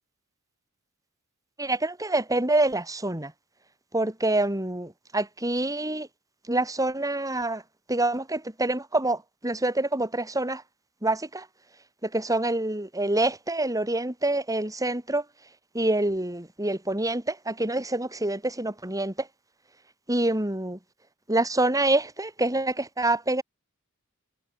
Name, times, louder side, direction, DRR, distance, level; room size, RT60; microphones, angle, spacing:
voice 1, 1.6-3.3 3.9-6.1 6.5-7.6 7.9-10.6 11.0-11.5 12.0-15.2 15.7-19.3 20.1-20.8 21.3-23.4, right 2 dB, 15° right, 4.5 m, -26 dB
head